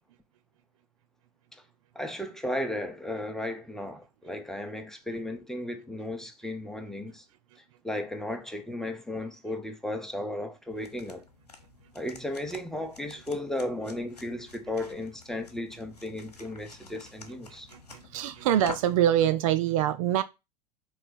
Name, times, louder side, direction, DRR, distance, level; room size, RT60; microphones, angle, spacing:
voice 1, 1.9-7.2 7.8-11.2 11.9-17.7, left 1 dB, ahead, 0.7 m, -35 dB
sound 1, 10.7-19.0, left 4 dB, 85° left, 0.7 m, -48 dB
voice 2, 17.7-20.2, right 11 dB, 60° right, 0.4 m, -25 dB
4.1 x 2.8 x 4.1 m
figure-of-eight pair, 80°, 20 cm